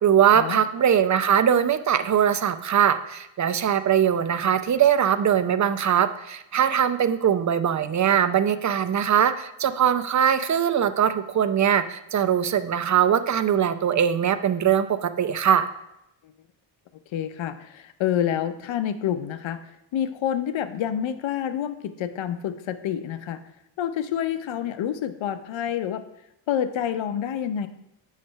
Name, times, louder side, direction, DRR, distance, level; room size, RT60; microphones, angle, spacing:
voice 1, 0.0-15.7, right 9 dB, 35° right, 12 dB, 0.6 m, -21 dB
voice 2, 17.1-19.6 19.9-23.4 23.8-26.0 26.5-27.7, left 10 dB, 65° left, 11 dB, 0.7 m, -28 dB
8.5 x 3.3 x 5.7 m, 0.83 s
supercardioid pair, 65°, 50 cm